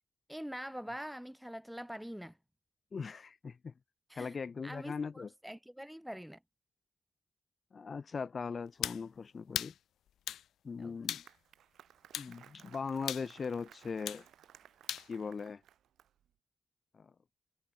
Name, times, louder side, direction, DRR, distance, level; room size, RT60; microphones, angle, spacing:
voice 1, 0.3-2.4 4.1-4.4 4.6-6.4 10.8-11.0, equal, 5° right, 2.7 m, -44 dB
voice 2, 2.9-3.7 4.2-5.3 7.7-9.7 10.6-11.2 12.2-14.2 15.1-15.6 16.9-17.1, left 5 dB, 50° left, 0.8 m, -39 dB
sound 1, 8.8-9.0 9.5-9.8 10.3-10.4 11.1-11.3 12.1-12.3 13.1-13.3 14.1-14.2 14.9-15.1, left 11 dB, 85° left, 1.9 m, -37 dB
Applause, 10.8-16.3, right 10 dB, 85° right, 3.3 m, -60 dB
cardioid pair, 55°, 0 cm